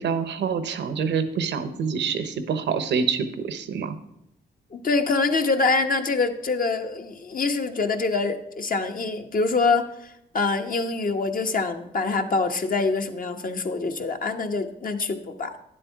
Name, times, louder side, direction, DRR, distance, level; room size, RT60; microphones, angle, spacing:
voice 1, 0.0-4.0, right 6 dB, 80° right, 11 dB, 0.9 m, -26 dB
voice 2, 4.7-15.5, left 3 dB, 50° left, 5 dB, 1.1 m, -25 dB
10.0 x 7.6 x 4.6 m, 0.80 s
cardioid pair, 60°, 18 cm